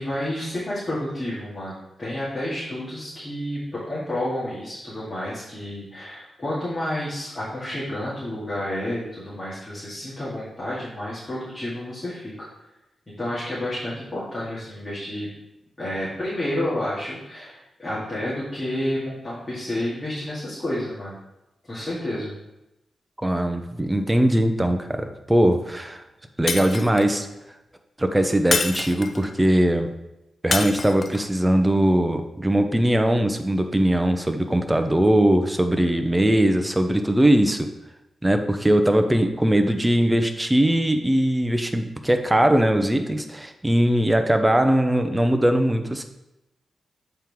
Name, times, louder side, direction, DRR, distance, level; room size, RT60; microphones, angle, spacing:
voice 1, 0.0-12.5 13.2-15.3 15.8-21.2 21.7-22.3, left 1 dB, 20° left, -11 dB, 2.3 m, -30 dB
voice 2, 23.2-26.0 26.4-27.3 28.0-29.9 30.4-37.7 38.2-46.0, right 1 dB, 10° right, 6 dB, 0.6 m, -20 dB
Shatter, 26.5-27.2 28.5-29.3 30.5-31.3, left 4 dB, 45° left, 0.5 m, -27 dB
7.7 x 4.5 x 3.6 m, 0.92 s
wide cardioid pair, 100°, 0 cm